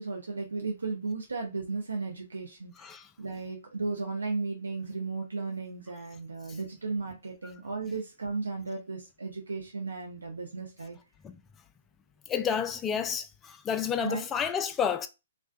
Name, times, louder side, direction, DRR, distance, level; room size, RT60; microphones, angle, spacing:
voice 1, 0.0-2.9 3.2-11.0 14.0-14.3, right 3 dB, 80° right, 0.5 m, -35 dB
voice 2, 12.3-15.1, left 7 dB, 15° left, 0.3 m, -30 dB
2.5 x 2.1 x 2.4 m
figure-of-eight pair, 125°, 0 cm